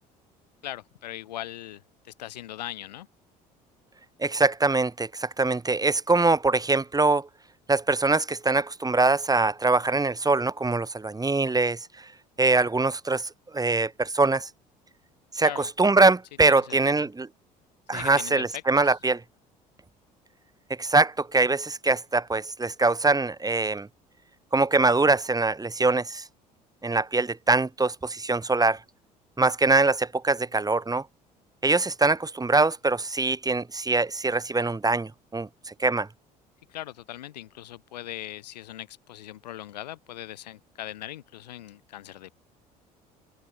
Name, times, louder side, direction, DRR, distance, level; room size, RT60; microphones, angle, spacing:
voice 1, 0.6-3.1 15.4-15.7 16.5-17.1 17.9-18.9 36.7-42.4, left 13 dB, 80° left, 3.9 m, -40 dB
voice 2, 4.2-7.3 7.7-12.1 12.4-14.5 15.3-17.3 17.9-19.2 20.8-23.9 24.5-26.2 26.8-28.8 29.4-31.0 31.6-36.1, right 3 dB, 15° right, 4.5 m, -23 dB
open air
figure-of-eight pair, 60°, 21 cm